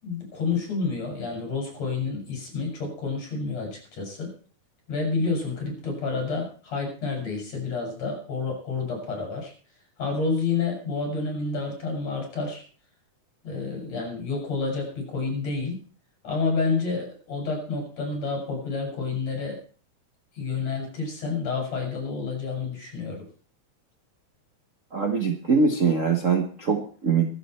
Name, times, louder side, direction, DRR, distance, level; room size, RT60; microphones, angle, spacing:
voice 1, 0.0-4.3 4.9-9.5 10.0-12.6 13.4-15.8 16.2-19.6 20.3-23.3, left 4 dB, 55° left, 0 dB, 6.8 m, -29 dB
voice 2, 24.9-27.3, right 5 dB, 85° right, 4 dB, 0.6 m, -23 dB
22.5 x 7.7 x 4.4 m, 0.41 s
omnidirectional pair, 3.5 m